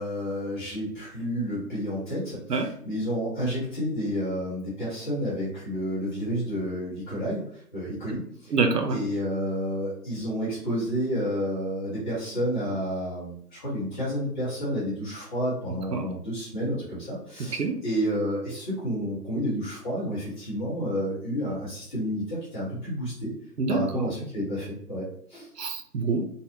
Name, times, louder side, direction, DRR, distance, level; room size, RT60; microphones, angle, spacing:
voice 1, 0.0-8.5 8.9-23.3 23.7-25.5, equal, 30° left, -8 dB, 1.4 m, -30 dB
voice 2, 8.5-9.0 15.9-16.1 17.5-17.8 23.6-24.1 25.6-26.2, right 4 dB, 80° right, 6 dB, 0.7 m, -26 dB
3.9 x 2.1 x 2.7 m, 0.62 s
figure-of-eight pair, 150°, 48 cm